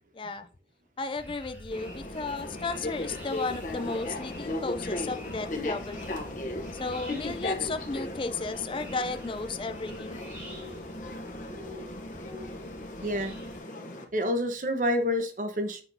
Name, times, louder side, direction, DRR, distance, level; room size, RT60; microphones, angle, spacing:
voice 1, 0.1-0.5 1.0-6.1 6.7-10.2, left 3 dB, 30° left, 10 dB, 0.4 m, -34 dB
sound 1, 1.2-13.6, equal, 10° right, 1.7 m, -47 dB
sound 2, 1.7-14.0, left 2 dB, 45° left, 0.9 m, -37 dB
voice 2, 13.0-13.3 14.1-15.8, left 1 dB, 45° right, 7 dB, 1.0 m, -28 dB
7.9 x 5.7 x 2.7 m, 0.40 s
head